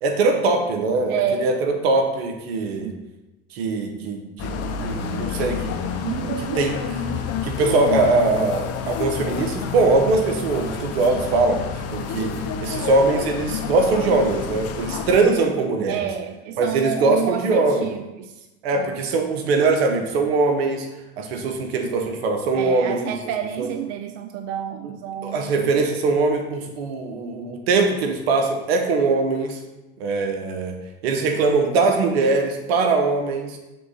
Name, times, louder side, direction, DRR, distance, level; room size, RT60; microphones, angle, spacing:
voice 1, 0.0-2.9 3.5-4.5 4.8-5.8 6.5-6.8 7.4-16.0 16.6-17.9 18.6-20.9 21.2-23.1 23.6-23.7 24.8-24.9 25.2-29.6 30.0-30.8 31.0-33.6, right 3 dB, 80° right, 5 dB, 1.0 m, -21 dB
voice 2, 1.1-1.5 2.8-3.0 6.0-6.6 15.9-18.5 18.7-18.9 21.4-21.5 22.5-25.7, right 8 dB, 55° right, 7 dB, 0.5 m, -29 dB
sound 1, 4.4-15.2, left 6 dB, 50° left, 0.7 m, -29 dB
6.6 x 3.8 x 4.1 m, 1.0 s
hypercardioid pair, 80°, 30 cm